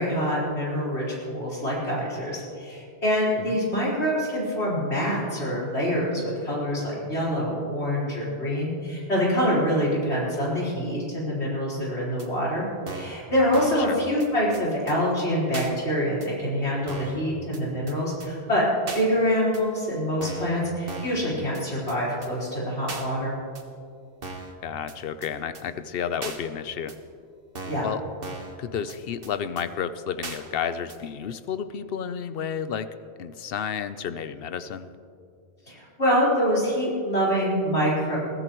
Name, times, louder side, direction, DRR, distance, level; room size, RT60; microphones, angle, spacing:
voice 1, 0.0-12.7 12.9-18.7 18.9-23.4 27.6-27.9 35.7-38.2, equal, 85° left, -6 dB, 4.7 m, -25 dB
sound 1, 12.2-12.3 12.9-13.2 13.5-13.9 14.2-14.3 14.5-14.6 14.9-15.0 15.5-15.7 16.2-16.3 16.9-17.2 17.5-17.6 17.9-18.0 18.2-18.3 18.9-19.0 19.5-19.6 20.2-20.5 20.9-21.2 21.5-21.6 21.9-22.0 22.2-22.3 22.9-23.1 23.6-23.7 24.2-24.5 24.9-25.0 25.2-25.3 25.6-25.7 26.2-26.4 26.9-27.0 27.6-27.9 28.2-28.6 28.9-29.0 29.2-29.3 29.6-29.7 30.2-30.4 30.9-31.0, right 3 dB, 60° right, 1.5 m, -37 dB
voice 2, 24.6-26.9 27.8-28.0 28.6-32.9 33.2-34.9, left 7 dB, 65° left, 11 dB, 0.9 m, -31 dB
22.0 x 15.5 x 3.1 m, 2.4 s
omnidirectional pair, 1.1 m